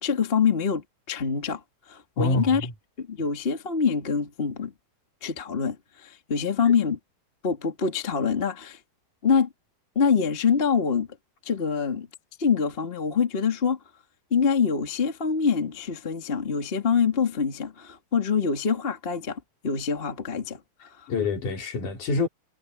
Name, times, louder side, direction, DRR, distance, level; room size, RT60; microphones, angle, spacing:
voice 1, 0.0-1.6 1.9-2.6 3.0-4.7 5.2-7.0 7.4-8.8 9.2-9.5 9.9-11.1 11.4-12.1 12.4-13.8 14.3-20.6 21.0-21.1, left 6 dB, 20° left, 1.6 m, -25 dB
voice 2, 2.2-2.7 21.1-22.3, left 3 dB, 55° left, 5.2 m, -26 dB
omnidirectional pair, 4.3 m